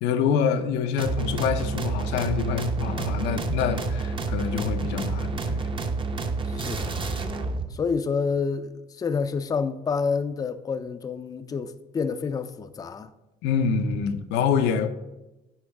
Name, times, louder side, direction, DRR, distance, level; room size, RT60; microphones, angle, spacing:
voice 1, 0.0-5.6 13.4-14.9, left 6 dB, 90° left, 0.6 m, -26 dB
sound 1, 1.0-7.7, right 3 dB, 30° right, 0.6 m, -29 dB
voice 2, 6.5-6.9 7.7-13.1, left 5 dB, 20° left, 0.4 m, -28 dB
8.7 x 4.5 x 3.4 m
cardioid pair, 110°, 17 cm